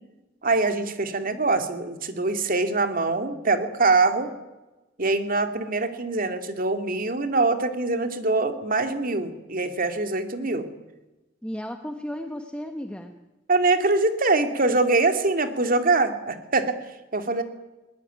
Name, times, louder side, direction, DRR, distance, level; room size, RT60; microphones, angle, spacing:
voice 1, 0.4-4.3 5.0-10.7 13.5-16.8 17.1-17.4, right 3 dB, 50° right, 8 dB, 2.4 m, -23 dB
voice 2, 11.4-13.1 17.3-17.4, equal, 5° left, 6 dB, 1.2 m, -34 dB
21.0 x 20.0 x 9.3 m, 1.1 s
head